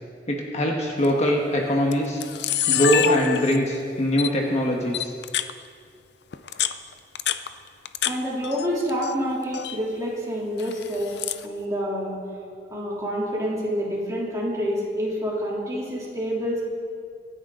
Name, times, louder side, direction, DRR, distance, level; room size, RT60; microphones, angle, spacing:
voice 1, 0.3-2.2 2.7-5.1, equal, 40° left, 0 dB, 1.5 m, -22 dB
Camera, 1.0-1.3 1.9-2.0 2.2-3.8 4.2-4.3 4.9-5.5 6.3-8.1 8.4-9.1 9.4-9.8 10.6-11.4, left 10 dB, 65° left, 0.5 m, -26 dB
voice 2, 8.0-11.2 11.4-12.2 12.7-16.6, equal, 20° right, -5 dB, 3.3 m, -27 dB
25.0 x 9.8 x 3.9 m, 2.2 s
head